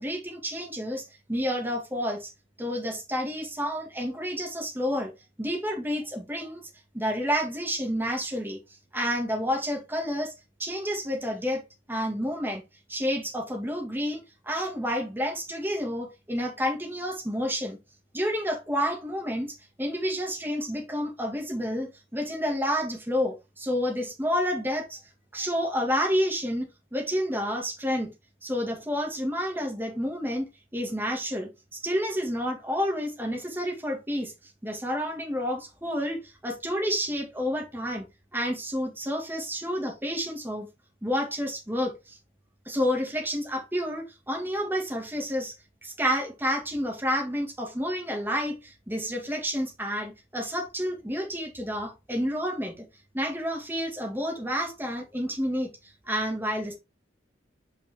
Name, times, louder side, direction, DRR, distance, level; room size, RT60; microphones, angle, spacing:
voice 1, 0.0-2.3 2.6-5.1 5.4-6.7 6.9-8.6 8.9-10.3 10.6-11.6 11.9-12.6 12.9-17.8 18.1-25.0 25.3-28.1 28.4-34.3 34.6-38.1 38.3-40.7 41.0-42.2 42.7-45.6 45.8-52.9 53.1-56.7, equal, 10° right, 2.0 m, -30 dB
5.6 x 5.3 x 3.6 m
head